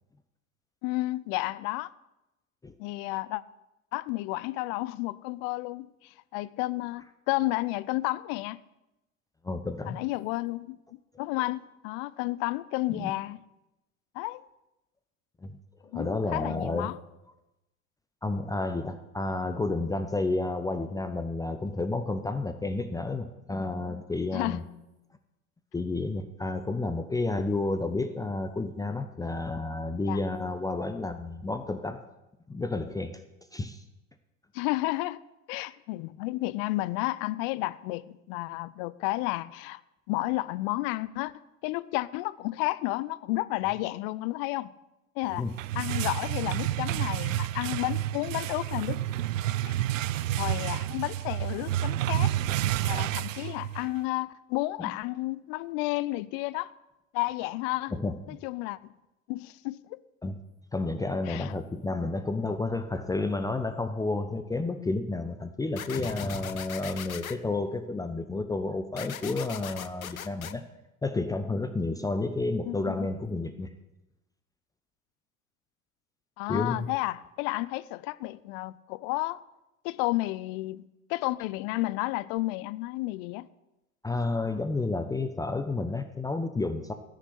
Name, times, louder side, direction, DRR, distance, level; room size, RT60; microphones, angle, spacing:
voice 1, 0.8-1.9 2.8-3.4 3.9-8.6 9.8-10.8 11.2-13.4 14.1-14.4 15.9-16.9 24.3-24.6 30.1-30.2 34.5-35.2 35.5-39.8 40.1-41.3 41.6-44.7 45.2-45.5 45.7-49.0 49.7-49.8 50.4-52.3 52.9-56.7 57.1-57.9 58.3-58.8 59.3-60.0 61.3-61.5 72.6-73.1 76.4-79.4 79.8-80.8 81.1-83.5, left 19 dB, 45° left, 0.6 m, -31 dB
voice 2, 9.4-10.0 12.9-13.1 15.4-15.6 15.9-16.9 18.2-24.6 25.7-32.0 32.5-33.2 33.5-33.8 45.3-45.5 54.8-54.9 57.9-58.1 60.2-60.4 60.7-70.6 71.0-73.7 76.5-76.9 84.0-86.9, left 2 dB, 10° left, 0.7 m, -31 dB
sound 1, 45.3-54.0, right 13 dB, 65° right, 0.5 m, -30 dB
sound 2, 65.8-67.4 69.0-70.5, left 9 dB, 80° left, 0.8 m, -39 dB
14.5 x 6.6 x 9.8 m
figure-of-eight pair, 80°, 41 cm